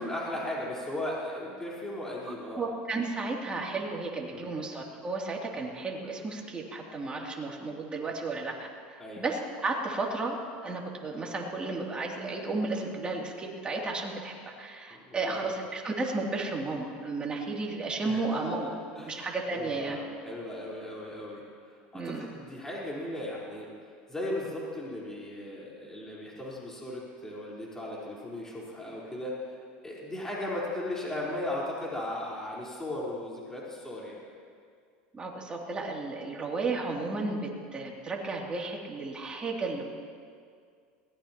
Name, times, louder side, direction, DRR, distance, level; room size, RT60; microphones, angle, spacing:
voice 1, 0.0-2.6 4.3-4.5 9.0-9.2 14.9-15.6 18.0-21.4 21.7-23.7 24.1-29.6 29.8-34.2, left 1 dB, 10° left, -6 dB, 4.2 m, -37 dB
voice 2, 2.3-10.4 10.6-18.7 19.0-20.0 21.9-22.3 35.1-39.8, right 3 dB, 20° right, -1 dB, 2.8 m, -33 dB
22.0 x 17.5 x 3.0 m, 2.2 s
supercardioid pair, 105°, 5 cm